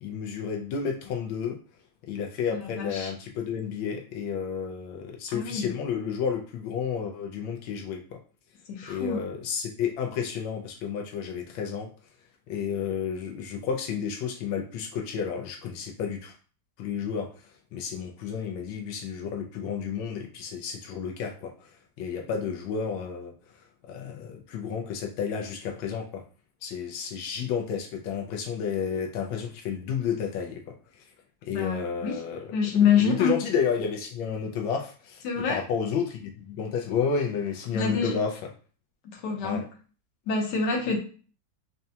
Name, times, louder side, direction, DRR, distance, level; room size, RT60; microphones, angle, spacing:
voice 1, 0.0-1.6 2.1-8.2 8.9-11.9 12.5-16.3 16.8-17.3 17.7-21.7 22.0-23.3 23.9-26.2 26.6-30.6 31.0-31.1 31.4-32.4 33.0-35.2 35.5-38.4 39.4-39.6, left 7 dB, 85° left, 2 dB, 1.4 m, -31 dB
voice 2, 2.5-3.1 5.3-5.7 8.7-9.2 31.5-32.2 32.5-33.3 35.2-35.6 37.7-38.1 39.1-39.6 40.3-41.0, left 6 dB, 65° left, 1 dB, 1.3 m, -26 dB
5.3 x 2.3 x 2.7 m, 0.40 s
omnidirectional pair, 2.1 m